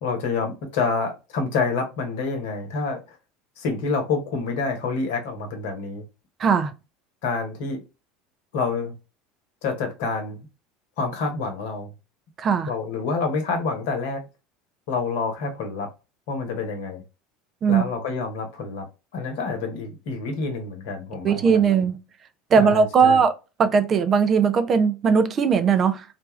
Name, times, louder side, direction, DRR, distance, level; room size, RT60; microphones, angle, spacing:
voice 1, 0.0-3.0 3.6-6.0 7.2-7.8 8.5-8.9 9.6-10.4 11.0-11.9 12.7-14.2 14.9-15.9 16.3-17.0 17.7-18.8 19.1-21.7 22.6-23.2, left 4 dB, 70° left, 0.9 m, -27 dB
voice 2, 6.4-6.7 12.4-12.7 17.6-17.8 21.2-21.9 22.5-23.3 23.6-26.0, right 6 dB, 40° right, 0.5 m, -19 dB
2.5 x 2.3 x 3.1 m
hypercardioid pair, 75°, 0 cm